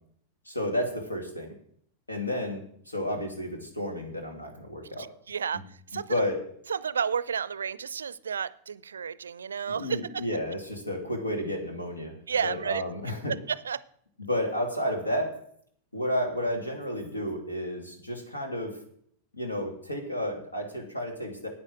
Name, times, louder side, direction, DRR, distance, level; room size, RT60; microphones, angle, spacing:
voice 1, 0.5-1.5 2.1-5.1 5.5-5.6 6.1-6.4 9.7-13.3 14.2-15.3 15.9-18.7 19.3-21.5, left 1 dB, 80° left, 3 dB, 2.5 m, -31 dB
voice 2, 5.0-5.6 5.9-6.1 6.7-10.2 12.3-12.8 13.3-13.8, right 7 dB, 70° right, 19 dB, 0.4 m, -31 dB
9.7 x 8.9 x 6.2 m, 0.64 s
figure-of-eight pair, 90°, 0 cm